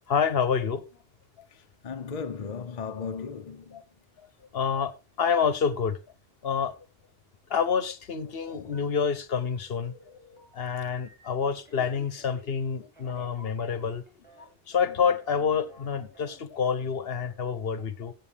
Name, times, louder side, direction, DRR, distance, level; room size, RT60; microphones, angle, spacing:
voice 1, 0.1-0.8 3.7-3.8 4.5-6.0 6.4-6.7 7.5-9.9 10.5-14.0 14.4-18.1, left 6 dB, 65° left, 1.1 m, -28 dB
voice 2, 1.5-3.8 8.6-8.9, left 5 dB, 45° left, 0.7 m, -37 dB
Telephone, 8.7-9.3 9.7-11.3 11.6-14.5 14.7-14.9 15.2-15.4 15.7-15.9 16.1-16.4 16.6-16.8 17.1-17.3, equal, 10° left, 4.8 m, -54 dB
16.0 x 7.5 x 3.4 m
omnidirectional pair, 1.1 m